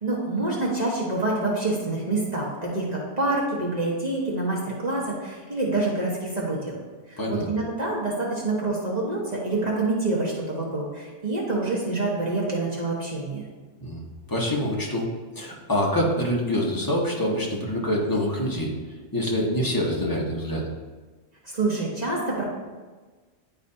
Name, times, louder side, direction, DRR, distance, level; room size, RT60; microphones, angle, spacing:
voice 1, 0.0-6.8 7.1-13.5 21.4-22.4, right 2 dB, 35° right, -5 dB, 1.3 m, -27 dB
voice 2, 7.2-7.5 13.8-14.0 14.3-15.1 15.4-18.7 19.1-20.7, equal, 20° left, -2 dB, 1.1 m, -25 dB
10.5 x 4.1 x 2.7 m, 1.3 s
omnidirectional pair, 1.2 m